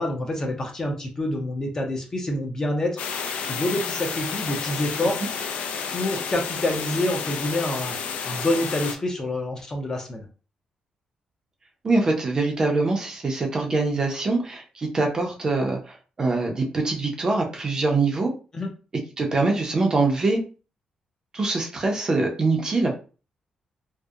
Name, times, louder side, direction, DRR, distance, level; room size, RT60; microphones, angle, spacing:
voice 1, 0.0-3.0 3.4-5.2 5.9-8.0 8.2-10.2 18.5-18.7, left 1 dB, 25° left, 2 dB, 0.5 m, -27 dB
sound 1, 3.0-9.0, left 6 dB, 85° left, 0.3 m, -31 dB
voice 2, 11.8-18.3 19.2-20.4 21.3-23.1, right 3 dB, 30° right, 1 dB, 0.5 m, -24 dB
2.7 x 2.0 x 2.3 m, 0.35 s
wide cardioid pair, 155°, 2 cm